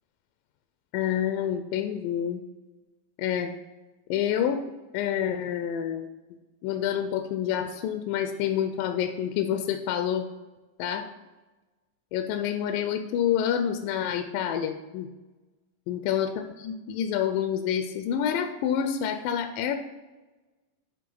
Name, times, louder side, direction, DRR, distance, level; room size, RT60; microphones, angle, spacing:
voice 1, 0.9-2.4 3.2-3.5 4.1-4.6 4.9-6.1 6.6-10.3 10.8-11.1 12.1-15.1 15.9-16.3 16.6-19.8, left 9 dB, 80° left, 7 dB, 2.0 m, -28 dB
10.5 x 3.7 x 5.3 m, 1.2 s
omnidirectional pair, 4.1 m